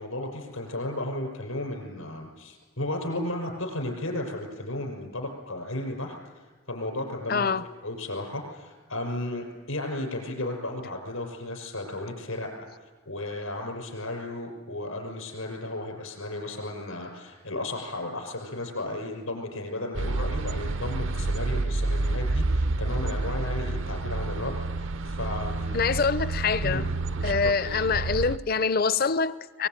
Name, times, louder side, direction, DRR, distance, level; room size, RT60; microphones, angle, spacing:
voice 1, 0.0-7.5 7.8-12.5 13.1-25.8 26.6-26.9, left 1 dB, 80° left, 2 dB, 6.2 m, -34 dB
voice 2, 7.3-7.6 25.7-26.9 27.2-29.7, left 5 dB, 45° left, 16 dB, 0.7 m, -25 dB
sound 1, 19.9-28.4, right 2 dB, 65° right, 0.7 m, -29 dB
23.0 x 21.0 x 9.2 m, 1.4 s
head